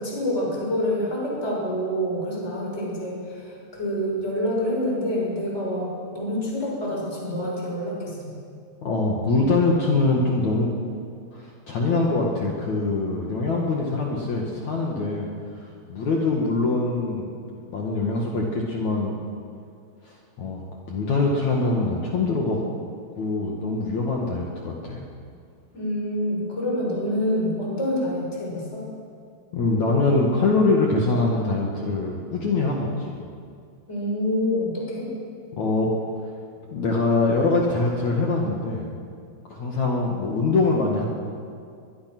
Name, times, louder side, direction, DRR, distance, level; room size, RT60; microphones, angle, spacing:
voice 1, 0.0-8.3 25.7-28.9 33.9-35.1, equal, 15° left, -3 dB, 6.4 m, -27 dB
voice 2, 8.8-10.7 11.3-17.4 17.7-19.2 20.0-20.6 20.9-22.6 23.2-25.0 29.5-33.2 35.5-35.9 36.7-38.8 39.5-41.0, left 3 dB, 50° left, -1 dB, 2.9 m, -23 dB
24.0 x 22.0 x 6.2 m, 2.3 s
omnidirectional pair, 4.8 m